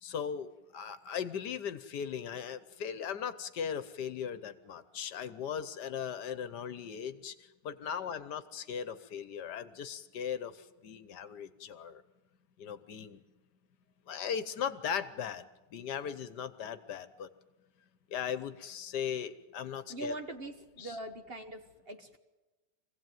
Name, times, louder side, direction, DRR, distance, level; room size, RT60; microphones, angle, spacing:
voice 1, 0.0-7.3 7.6-10.5 10.8-12.0 12.6-13.2 14.1-15.4 15.7-17.3 18.1-20.1 20.8-20.9, left 8 dB, 75° left, 13 dB, 1.5 m, -38 dB
voice 2, 19.9-22.2, right 2 dB, 35° right, 7 dB, 1.4 m, -42 dB
24.0 x 16.5 x 9.2 m, 1.1 s
omnidirectional pair, 1.8 m